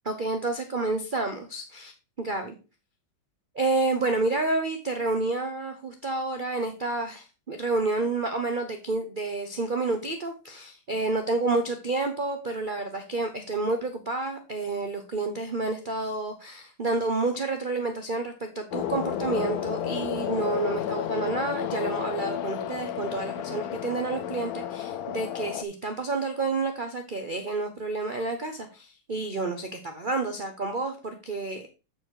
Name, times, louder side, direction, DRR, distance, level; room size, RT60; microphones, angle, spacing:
voice 1, 0.0-1.9 2.2-2.6 3.5-31.7, right 3 dB, 85° right, 5 dB, 0.4 m, -29 dB
sound 1, 18.7-25.6, left 10 dB, 90° left, 0.8 m, -32 dB
8.3 x 4.6 x 4.6 m, 0.31 s
omnidirectional pair, 2.3 m